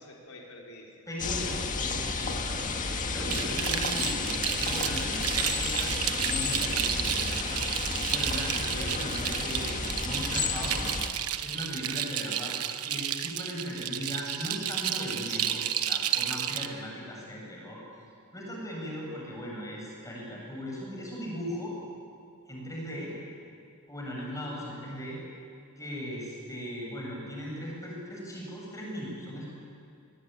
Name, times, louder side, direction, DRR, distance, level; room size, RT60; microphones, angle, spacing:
voice 1, 0.0-1.1 1.4-1.7 2.8-3.5 23.1-23.2 24.1-25.1, left 2 dB, 75° left, -1 dB, 4.2 m, -50 dB
voice 2, 1.1-2.3 3.1-7.6 8.1-9.7 10.0-10.9 11.4-12.5 12.8-15.6 15.9-17.8 18.3-21.7 22.5-23.1 23.9-25.2 25.8-29.5, equal, 15° left, -3 dB, 7.3 m, -38 dB
sound 1, 1.2-11.1, left 4 dB, 35° left, 1.8 m, -32 dB
sound 2, 3.3-16.7, right 11 dB, 75° right, 1.2 m, -32 dB
sound 3, 13.8-15.6, right 3 dB, 35° right, 5.4 m, -44 dB
24.0 x 21.0 x 9.2 m, 2.5 s
head